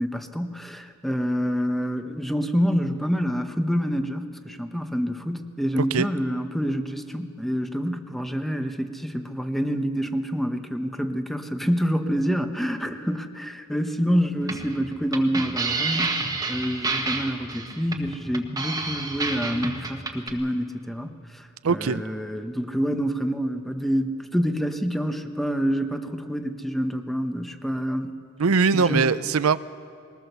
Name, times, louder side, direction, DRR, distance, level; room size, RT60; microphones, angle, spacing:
voice 1, 0.0-28.1 28.7-29.1, equal, ahead, 7 dB, 0.9 m, -27 dB
sound 1, 14.4-20.3, right 3 dB, 20° right, 1.5 m, -29 dB
voice 2, 21.6-22.0 28.4-29.6, right 5 dB, 85° right, 14 dB, 0.5 m, -21 dB
21.5 x 19.0 x 6.8 m, 2.3 s
head